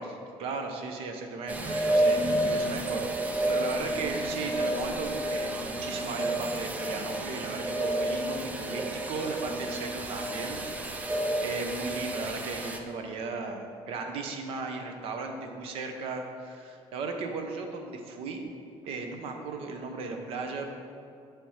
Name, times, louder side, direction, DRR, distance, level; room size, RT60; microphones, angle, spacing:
voice 1, 0.0-18.5 18.8-20.7, right 4 dB, 60° right, 4 dB, 0.7 m, -36 dB
sound 1, 1.5-12.8, right 1 dB, 15° right, 0.4 m, -30 dB
7.4 x 3.5 x 5.6 m, 2.5 s
cardioid pair, 175°, 11 cm